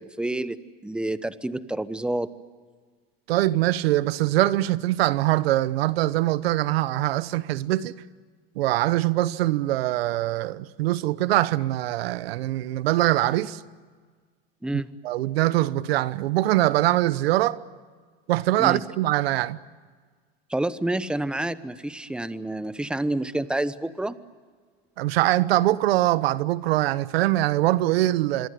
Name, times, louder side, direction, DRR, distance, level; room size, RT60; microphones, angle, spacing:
voice 1, 0.0-2.3 14.6-14.9 18.6-18.8 20.5-24.1, right 1 dB, 5° right, 1.0 m, -28 dB
voice 2, 3.3-7.9 8.6-13.6 15.0-17.6 18.3-19.6 25.0-28.5, right 16 dB, 80° right, 1.1 m, -23 dB
27.0 x 23.0 x 9.4 m
supercardioid pair, 125°, 30 cm